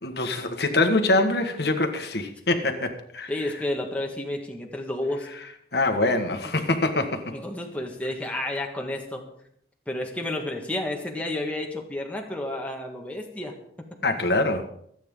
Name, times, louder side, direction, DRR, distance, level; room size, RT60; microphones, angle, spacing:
voice 1, 0.0-3.5 5.7-7.4 14.0-14.7, left 2 dB, 60° left, 6 dB, 1.7 m, -24 dB
voice 2, 3.3-5.3 7.3-9.2 9.9-13.5, left 1 dB, 10° left, 1 dB, 1.8 m, -31 dB
26.0 x 9.2 x 3.8 m, 0.69 s
head